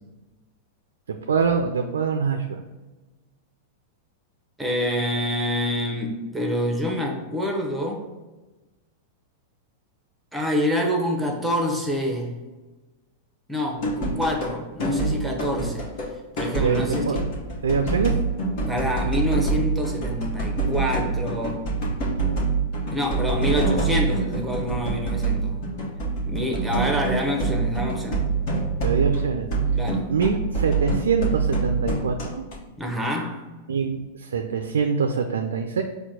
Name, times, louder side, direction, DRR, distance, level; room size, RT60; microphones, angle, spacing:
voice 1, 1.1-2.6 16.6-17.2 17.6-18.2 28.8-29.5 30.1-32.4 33.7-35.8, right 5 dB, 80° right, 5 dB, 0.3 m, -24 dB
voice 2, 4.6-8.0 10.3-12.4 13.5-15.9 16.4-17.2 18.6-21.7 22.9-25.6 26.3-28.3 29.7-30.1 32.8-33.5, equal, 5° right, 1 dB, 0.8 m, -27 dB
sound 1, 13.8-14.5 14.8-16.1 16.4-32.6, right 3 dB, 55° left, 1.1 m, -25 dB
4.5 x 2.2 x 4.1 m, 1.2 s
hypercardioid pair, 105°, 0 cm